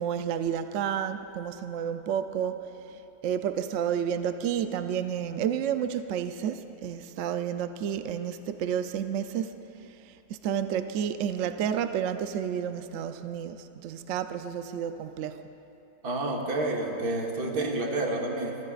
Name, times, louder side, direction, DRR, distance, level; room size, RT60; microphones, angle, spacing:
voice 1, 0.0-9.5 10.0-15.4, right 8 dB, 65° right, 9 dB, 0.8 m, -31 dB
voice 2, 16.0-18.6, right 2 dB, 80° right, 0 dB, 2.0 m, -29 dB
26.5 x 15.0 x 2.4 m, 2.8 s
omnidirectional pair, 1.6 m